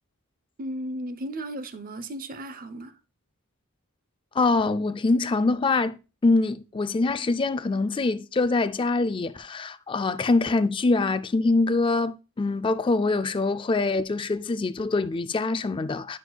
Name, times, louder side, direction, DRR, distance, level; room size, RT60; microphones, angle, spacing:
voice 1, 0.6-2.9, right 1 dB, 40° right, 0.6 m, -35 dB
voice 2, 4.3-6.0 6.2-16.2, left 3 dB, 20° left, 0.3 m, -24 dB
10.5 x 6.1 x 2.3 m
head